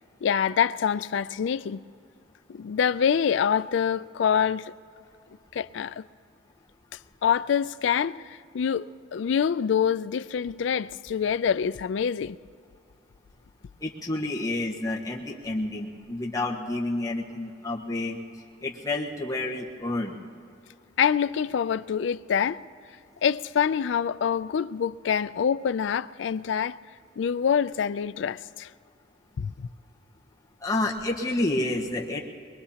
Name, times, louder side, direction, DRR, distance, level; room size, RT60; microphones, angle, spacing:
voice 1, 0.2-1.8 2.5-4.7 5.5-6.0 7.2-8.9 9.1-12.4 21.0-22.6 23.2-26.8 27.2-28.7 29.4-29.7, left 7 dB, 70° left, 0.3 m, -25 dB
voice 2, 13.8-18.2 18.6-20.2 30.6-32.2, left 2 dB, 20° left, 1.3 m, -29 dB
23.0 x 22.0 x 2.9 m
head